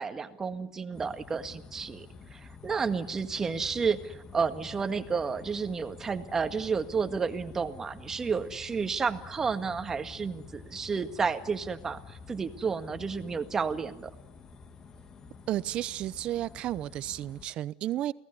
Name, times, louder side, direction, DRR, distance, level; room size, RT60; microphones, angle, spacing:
voice 1, 0.0-14.1, right 5 dB, 20° right, 1.8 m, -31 dB
sound 1, 0.9-17.5, left 4 dB, 25° left, 2.1 m, -50 dB
sound 2, 3.5-13.8, left 9 dB, 50° left, 7.0 m, -54 dB
voice 2, 15.5-18.1, right 13 dB, 45° right, 0.9 m, -32 dB
29.0 x 18.5 x 9.7 m
cardioid pair, 145°, 2 cm